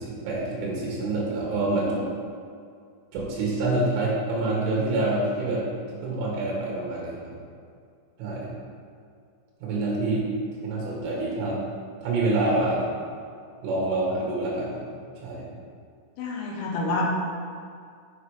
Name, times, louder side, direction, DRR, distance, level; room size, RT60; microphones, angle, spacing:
voice 1, 0.0-2.0 3.1-5.6 5.9-7.3 8.2-8.6 9.6-10.3 10.6-11.6 12.0-12.8 13.6-14.9 15.2-15.5, right 2 dB, 80° right, -4 dB, 4.2 m, -26 dB
voice 2, 16.2-17.2, left 2 dB, 75° left, -2 dB, 3.5 m, -27 dB
7.2 x 7.2 x 4.9 m, 2.3 s
omnidirectional pair, 5.7 m